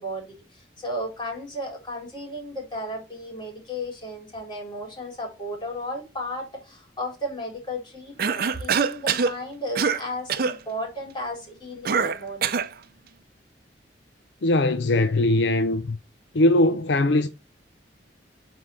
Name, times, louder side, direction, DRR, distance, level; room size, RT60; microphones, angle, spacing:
voice 1, 0.0-12.6, equal, 25° left, 4.4 m, -34 dB
Cough, 8.2-9.3 9.8-10.0 10.3-10.6 11.9-12.7, right 6 dB, 55° right, 0.6 m, -24 dB
voice 2, 14.4-16.0 16.3-17.3, left 2 dB, 70° left, 0.6 m, -20 dB
5.7 x 4.6 x 6.4 m
head